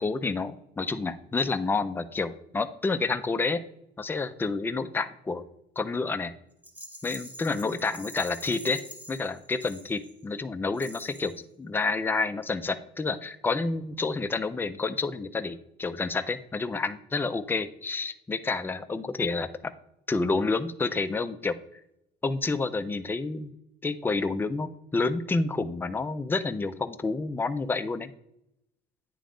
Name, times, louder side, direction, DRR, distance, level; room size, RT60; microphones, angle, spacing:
voice 1, 0.0-3.6 4.0-5.4 5.8-6.3 7.0-8.8 9.1-19.7 20.1-21.6 22.2-23.5 23.8-28.1, left 3 dB, 10° left, 10 dB, 0.4 m, -29 dB
Rattle, 6.6-10.3 10.7-11.4, equal, 10° right, 1.0 m, -46 dB
9.2 x 3.4 x 3.7 m, 0.79 s
cardioid pair, 110°, 17 cm